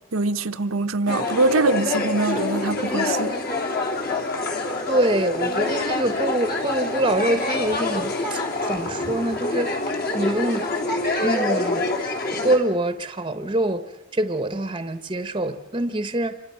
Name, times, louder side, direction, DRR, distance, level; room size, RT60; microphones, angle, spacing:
voice 1, 0.1-3.3, right 2 dB, 85° right, 1.0 m, -23 dB
sound 1, 1.1-12.6, left 2 dB, 45° left, 3.4 m, -26 dB
voice 2, 4.9-10.7 11.2-11.9 12.4-16.4, right 1 dB, 25° right, 1.0 m, -25 dB
27.5 x 24.5 x 5.7 m
head